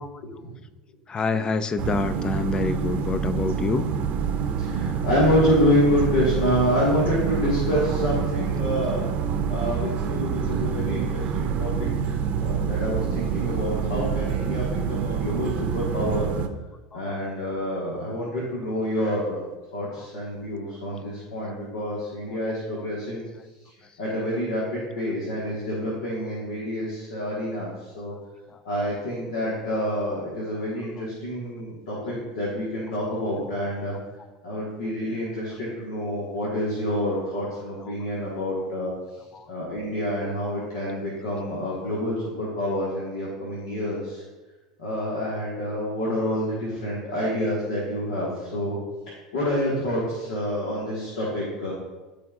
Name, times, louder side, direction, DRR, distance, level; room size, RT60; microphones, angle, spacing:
voice 1, 0.2-0.6 4.6-9.0 9.5-16.3 16.9-19.4 19.7-23.2 24.0-28.1 28.6-34.0 34.4-38.9 39.5-44.2 44.8-48.8 49.1-51.7, equal, 80° left, -6 dB, 1.7 m, -27 dB
voice 2, 1.1-3.9, left 4 dB, 25° left, 13 dB, 0.5 m, -26 dB
sound 1, 1.8-16.5, right 7 dB, 50° right, 0.7 m, -27 dB
12.5 x 4.2 x 2.5 m, 1.2 s
hypercardioid pair, 95°, 3 cm